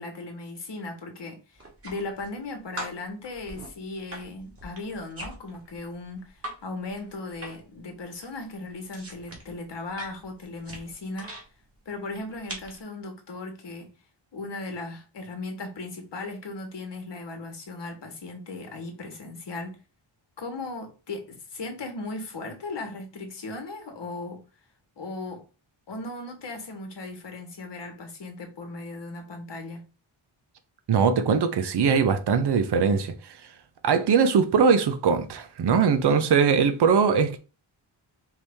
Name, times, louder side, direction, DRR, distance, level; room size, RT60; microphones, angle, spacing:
voice 1, 0.0-11.3 11.8-13.9 14.3-19.8 20.4-24.4 25.0-25.4 25.9-29.9, left 2 dB, 60° left, 1.3 m, -37 dB
sound 1, 1.5-2.4 2.8-6.6 6.9-7.8 8.0-11.5 12.1-12.8, right 1 dB, 30° right, 1.8 m, -41 dB
voice 2, 30.9-33.4 33.8-37.4, right 6 dB, 60° right, 0.7 m, -21 dB
4.7 x 2.7 x 3.5 m
wide cardioid pair, 105°, 47 cm